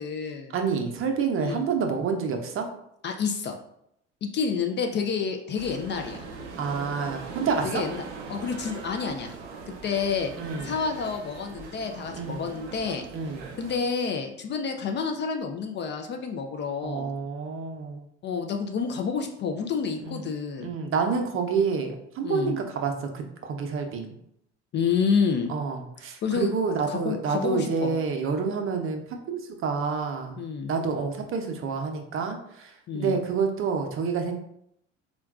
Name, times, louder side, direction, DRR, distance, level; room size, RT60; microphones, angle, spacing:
voice 1, 0.0-0.5 1.4-1.6 3.0-3.6 4.2-6.2 7.6-8.0 8.3-9.3 9.7-10.3 10.6-13.0 13.6-17.1 18.2-20.8 22.2-22.5 24.7-25.5 26.2-26.6 26.9-27.9 30.4-30.7 32.9-33.2, left 5 dB, 35° left, 4 dB, 0.4 m, -29 dB
voice 2, 0.5-2.7 6.6-7.8 10.4-10.7 12.1-12.4 13.1-13.5 16.8-18.0 20.0-20.3 20.6-24.2 25.5-29.0 29.3-30.4 30.7-34.4, right 5 dB, 40° right, 4 dB, 0.5 m, -28 dB
sound 1, 5.5-13.8, right 4 dB, 90° right, 0.5 m, -40 dB
3.7 x 2.2 x 2.3 m, 0.74 s
hypercardioid pair, 70°, 33 cm